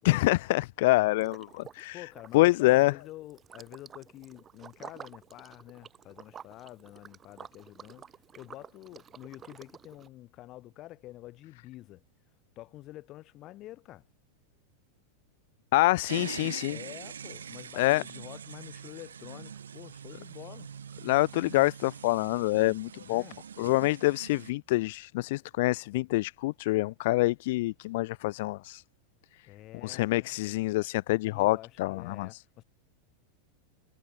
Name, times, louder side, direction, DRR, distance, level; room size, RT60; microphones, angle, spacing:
voice 1, 0.0-2.0 2.3-2.9 15.7-16.8 17.8-18.0 21.0-23.2 23.6-28.8 29.8-32.3, left 19 dB, 50° left, 0.6 m, -26 dB
Liquid, 1.2-1.9 2.1-10.1, right 8 dB, 20° right, 1.5 m, -50 dB
voice 2, 1.9-8.1 8.3-12.0 12.6-14.1 16.1-20.7 23.0-23.4 29.4-30.3 31.2-32.6, left 16 dB, 35° left, 4.6 m, -48 dB
sound 1, 16.1-24.5, right 7 dB, 70° right, 1.3 m, -44 dB
figure-of-eight pair, 90°, 0 cm